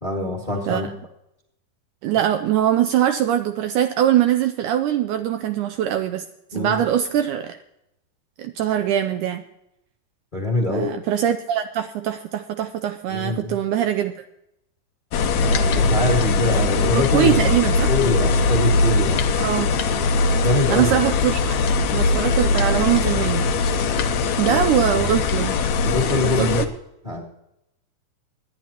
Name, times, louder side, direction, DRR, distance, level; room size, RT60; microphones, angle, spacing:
voice 1, 0.0-0.9 6.5-6.8 10.3-10.9 13.1-13.5 15.3-17.5 17.9-19.2 20.4-20.9 24.5-24.6 25.8-26.7 27.0-27.2, left 2 dB, 20° left, -1 dB, 1.4 m, -24 dB
voice 2, 2.0-6.2 6.5-7.6 8.4-9.4 10.7-14.1 16.9-17.9 19.4-19.7 20.7-21.6 21.9-23.4 24.4-25.6 26.2-26.7, right 10 dB, 80° right, 8 dB, 1.9 m, -22 dB
sound 1, 15.1-26.7, left 3 dB, 70° left, 1.9 m, -21 dB
25.0 x 10.5 x 2.9 m, 0.83 s
omnidirectional pair, 4.1 m